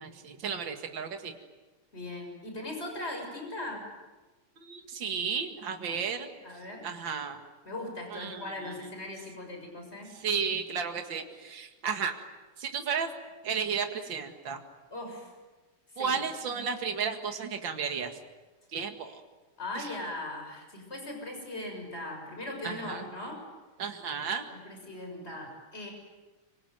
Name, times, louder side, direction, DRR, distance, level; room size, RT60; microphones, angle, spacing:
voice 1, 0.0-1.3 4.6-6.3 6.8-7.4 8.1-8.9 10.1-12.2 12.6-13.1 13.4-14.6 16.0-18.1 18.7-19.2 19.7-19.9 22.6-23.0 23.8-24.5, right 6 dB, 60° right, 5 dB, 2.7 m, -33 dB
voice 2, 1.9-3.8 5.8-6.0 6.4-6.9 7.7-10.1 14.9-15.3 15.9-16.1 19.6-23.4 24.5-25.9, left 1 dB, 25° left, 2 dB, 6.9 m, -39 dB
26.0 x 24.5 x 9.4 m, 1.2 s
omnidirectional pair, 2.4 m